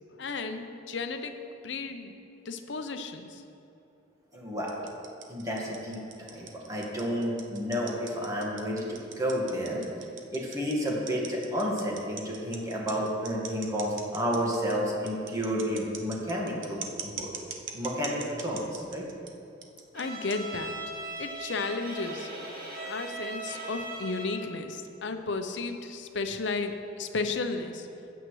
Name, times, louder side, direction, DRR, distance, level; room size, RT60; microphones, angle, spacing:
voice 1, 0.1-1.3 1.6-2.2 2.4-3.4 19.9-20.8 21.2-22.3 22.8-27.9, left 3 dB, 65° left, 7 dB, 0.7 m, -33 dB
voice 2, 4.3-4.8 5.3-6.0 6.3-9.8 10.3-17.3 17.7-19.1, equal, 20° right, -3 dB, 1.6 m, -31 dB
sound 1, 4.7-19.3 19.6-20.0 20.3-20.4 21.2-21.3, right 7 dB, 90° right, 0.8 m, -41 dB
Bowed string instrument, 19.9-24.5, right 2 dB, 55° right, 2.0 m, -39 dB
14.5 x 8.0 x 3.2 m, 2.7 s
head